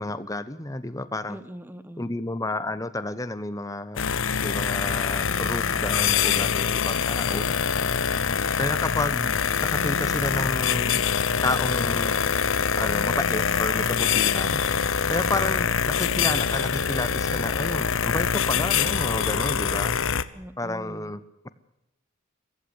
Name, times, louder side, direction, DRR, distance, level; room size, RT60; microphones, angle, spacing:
voice 1, 0.0-1.4 2.0-4.0 4.4-7.5 8.6-9.3 9.7-11.0 11.4-12.3 12.8-14.6 15.1-20.0 20.6-21.5, left 2 dB, 15° left, 12 dB, 1.0 m, -31 dB
voice 2, 1.3-2.1 7.3-7.9 20.3-21.1, equal, 10° right, 13 dB, 1.2 m, -42 dB
sound 1, 4.0-20.2, left 6 dB, 75° left, 1.0 m, -24 dB
23.5 x 15.0 x 8.2 m, 0.86 s
head